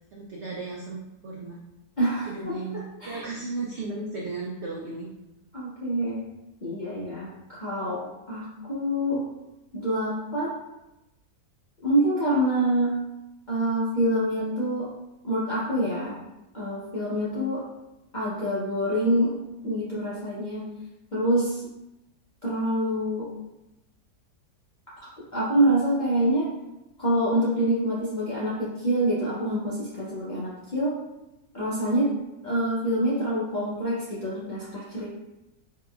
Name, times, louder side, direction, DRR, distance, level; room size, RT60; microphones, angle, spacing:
voice 1, 0.1-1.6 2.3-5.1, right 3 dB, 90° right, -2 dB, 0.6 m, -35 dB
voice 2, 2.0-2.6 3.0-3.2 5.5-6.3 6.6-9.3 9.7-10.5 11.8-13.0 13.5-14.9 15.2-16.2 16.5-17.7 18.1-19.4 19.6-20.6 21.1-21.6 22.4-23.3 25.0-25.1 25.3-26.5 27.0-31.0 31.5-32.1 32.4-35.1, right 1 dB, 60° left, -9 dB, 0.4 m, -26 dB
3.6 x 2.9 x 2.3 m, 0.95 s
omnidirectional pair, 1.7 m